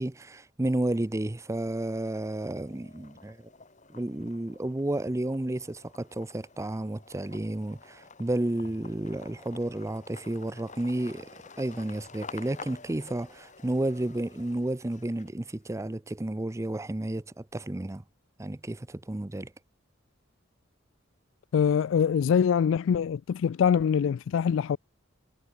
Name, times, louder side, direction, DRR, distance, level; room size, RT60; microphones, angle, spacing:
voice 1, 0.0-3.5 3.9-11.3 11.6-18.0 18.4-19.5, right 1 dB, 15° right, 0.5 m, -32 dB
sound 1, 1.0-1.7 2.1-15.6, left 4 dB, 40° left, 4.9 m, -50 dB
voice 2, 21.5-24.8, left 7 dB, 65° left, 0.3 m, -24 dB
head